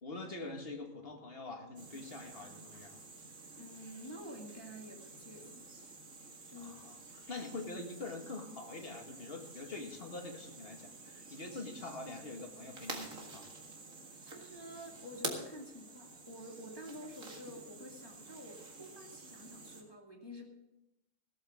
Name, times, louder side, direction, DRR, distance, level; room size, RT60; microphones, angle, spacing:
voice 1, 0.0-3.0 6.6-13.5, left 2 dB, 45° left, 3 dB, 2.1 m, -45 dB
sound 1, 1.8-19.8, right 3 dB, 70° right, 2.4 m, -49 dB
voice 2, 3.6-5.7 6.4-7.0 14.2-20.5, equal, 15° left, 0 dB, 2.1 m, -49 dB
16.5 x 13.5 x 3.7 m, 0.93 s
omnidirectional pair, 1.4 m